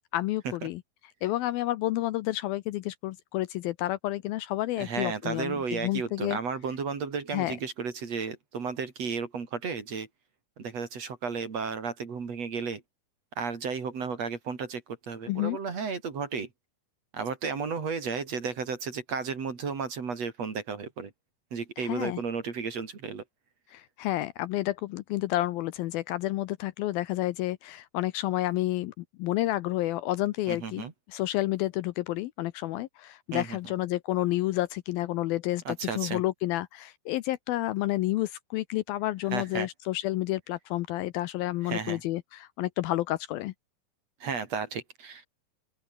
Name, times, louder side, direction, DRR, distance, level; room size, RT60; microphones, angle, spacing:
voice 1, 0.1-0.8 1.2-6.4 7.3-7.6 15.3-15.6 21.8-22.2 23.7-43.5, left 16 dB, 75° left, 2.4 m, -30 dB
voice 2, 4.8-10.1 10.6-12.8 13.4-16.5 17.1-21.1 21.5-23.2 30.5-30.9 33.3-33.6 35.7-36.2 39.3-39.7 41.6-42.0 44.2-45.2, right 5 dB, 45° right, 3.8 m, -33 dB
open air
omnidirectional pair, 4.6 m